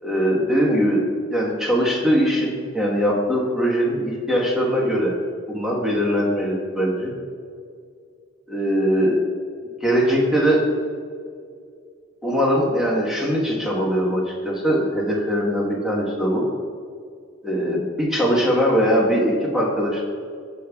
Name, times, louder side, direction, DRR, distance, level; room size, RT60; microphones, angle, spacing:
voice 1, 0.0-1.0 1.3-5.2 5.5-7.1 8.5-9.2 9.8-10.6 12.2-16.4 17.4-20.0, equal, ahead, -5 dB, 1.3 m, -21 dB
15.0 x 5.3 x 2.4 m, 2.2 s
head